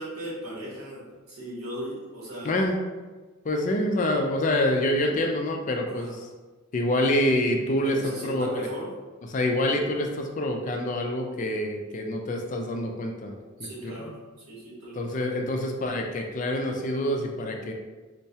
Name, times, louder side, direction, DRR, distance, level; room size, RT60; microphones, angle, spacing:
voice 1, 0.0-2.6 5.0-5.1 5.9-6.1 7.8-8.9 13.6-15.3, right 1 dB, 80° right, -5 dB, 1.3 m, -37 dB
voice 2, 2.4-2.8 3.4-6.3 6.7-8.7 9.3-13.9 14.9-17.7, left 1 dB, 35° left, 3 dB, 0.3 m, -26 dB
4.5 x 2.1 x 2.7 m, 1.3 s
head